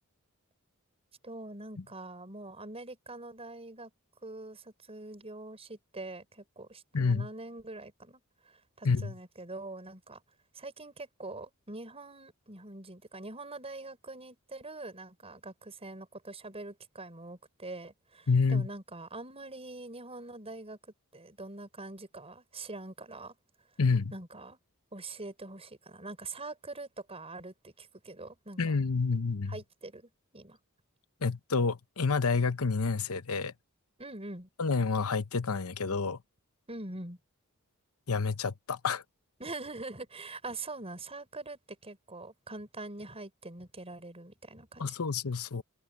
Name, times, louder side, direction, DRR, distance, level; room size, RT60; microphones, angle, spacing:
voice 1, 1.2-3.9 4.2-10.2 10.5-23.4 24.1-24.6 24.9-28.8 29.5-30.6 34.0-34.5 36.7-37.2 39.4-45.0, right 2 dB, 25° right, 6.0 m, -44 dB
voice 2, 6.9-7.3 8.8-9.1 18.3-18.7 23.8-24.1 28.6-29.5 31.2-33.5 34.6-36.2 38.1-39.0 44.8-45.6, left 4 dB, 70° left, 0.9 m, -28 dB
head